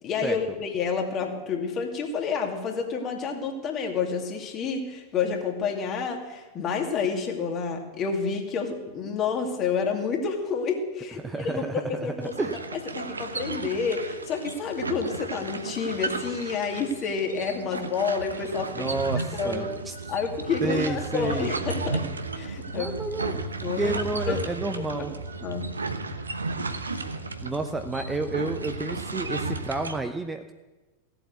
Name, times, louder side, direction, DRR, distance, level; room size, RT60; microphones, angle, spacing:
voice 1, 0.0-12.3 12.7-19.7 20.1-22.1 22.3-23.3 23.6-24.0 24.3-24.4 24.7-24.8 25.4-25.7, left 5 dB, 30° left, 2 dB, 2.5 m, -29 dB
voice 2, 11.2-12.1 12.4-12.5 18.7-19.9 20.6-21.5 22.7-23.4 23.8-25.1 27.4-30.5, right 3 dB, 10° right, 6 dB, 0.8 m, -30 dB
sound 1, 12.2-30.0, right 3 dB, 75° right, 0.9 m, -33 dB
16.5 x 7.9 x 8.1 m, 1.2 s
figure-of-eight pair, 90°, 0 cm